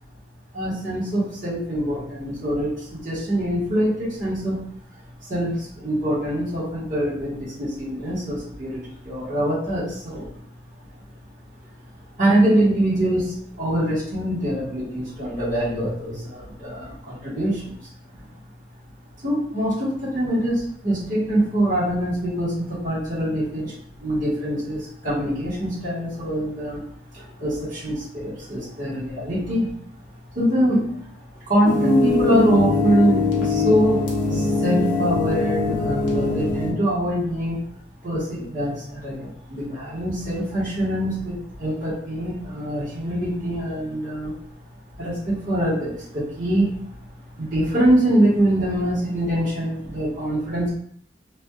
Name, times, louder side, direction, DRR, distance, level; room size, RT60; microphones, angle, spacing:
voice 1, 0.5-4.6 5.2-10.3 12.2-18.2 19.2-26.8 27.1-29.7 30.3-31.1 31.4-37.6 38.0-44.3 45.0-46.7 47.3-50.7, right 1 dB, 45° right, -12 dB, 1.4 m, -24 dB
sound 1, 31.6-36.7, left 3 dB, 70° left, 0.9 m, -22 dB
3.2 x 2.6 x 2.3 m, 0.65 s
head